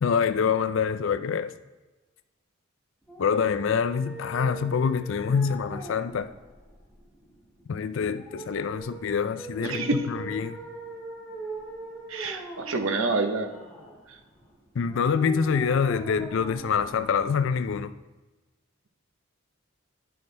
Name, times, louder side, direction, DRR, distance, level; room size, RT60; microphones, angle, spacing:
voice 1, 0.0-1.5 3.2-6.3 7.7-10.6 14.7-17.9, left 6 dB, 65° left, 12 dB, 0.4 m, -26 dB
sound 1, 3.0-18.0, right 1 dB, 5° left, 1.4 m, -42 dB
voice 2, 9.6-10.0 12.1-13.5, right 3 dB, 75° right, 6 dB, 0.9 m, -27 dB
10.5 x 5.6 x 3.3 m, 1.2 s
head